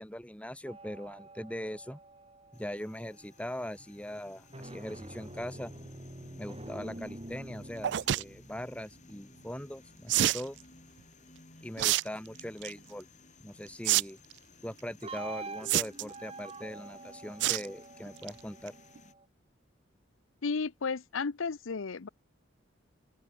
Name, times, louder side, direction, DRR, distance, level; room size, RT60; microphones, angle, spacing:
voice 1, 0.0-2.0 2.5-5.7 6.4-10.6 11.6-13.1 13.4-14.2 14.6-18.7, equal, 5° left, 1.8 m, -41 dB
sound 1, 0.7-3.3 4.3-11.2 15.0-19.2, right 2 dB, 30° right, 2.4 m, -47 dB
sound 2, 2.5-19.1, left 2 dB, 35° left, 6.5 m, -58 dB
sound 3, 7.8-8.2 10.1-10.4 11.8-12.0 12.4-12.7 13.8-14.0 14.3-14.4 15.7-16.2 17.4-17.7 18.1-18.3 18.7-18.8 19.0-19.1, right 13 dB, 60° right, 0.3 m, -27 dB
voice 2, 20.4-22.1, left 4 dB, 85° left, 0.7 m, -33 dB
open air
head